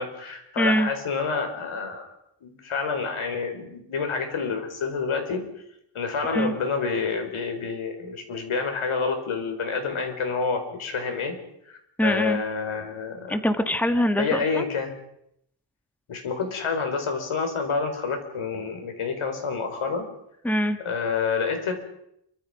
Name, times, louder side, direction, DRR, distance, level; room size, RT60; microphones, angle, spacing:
voice 1, 0.0-2.1 2.4-5.5 5.9-11.3 11.7-13.3 14.2-14.9 16.1-20.1 20.8-21.7, left 5 dB, 85° left, 5 dB, 5.0 m, -28 dB
voice 2, 0.6-0.9 6.3-6.5 12.0-12.4 13.3-14.6 20.4-20.8, equal, 5° left, 8 dB, 1.5 m, -23 dB
27.5 x 24.5 x 5.2 m, 0.75 s
wide cardioid pair, 155°, 48 cm